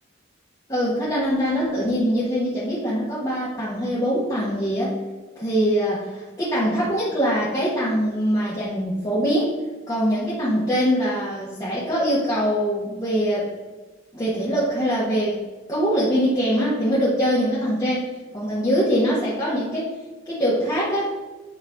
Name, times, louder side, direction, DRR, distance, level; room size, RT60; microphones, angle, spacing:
voice 1, 0.7-4.9 5.3-9.5 9.9-13.5 14.1-15.4 15.7-18.1 18.3-19.9 20.3-21.1, equal, 20° left, -8 dB, 1.3 m, -23 dB
8.4 x 3.2 x 4.9 m, 1.3 s
head